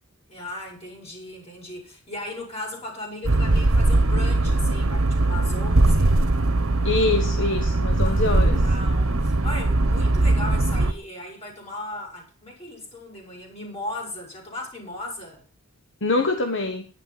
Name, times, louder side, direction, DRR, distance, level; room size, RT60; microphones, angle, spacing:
voice 1, 0.3-6.2 8.0-15.4, left 1 dB, 30° left, 7.2 m, -37 dB
sound 1, 3.2-10.9, right 2 dB, 80° right, 1.3 m, -20 dB
voice 2, 6.8-8.6 16.0-16.9, left 3 dB, 60° left, 1.2 m, -24 dB
11.5 x 10.0 x 5.8 m
head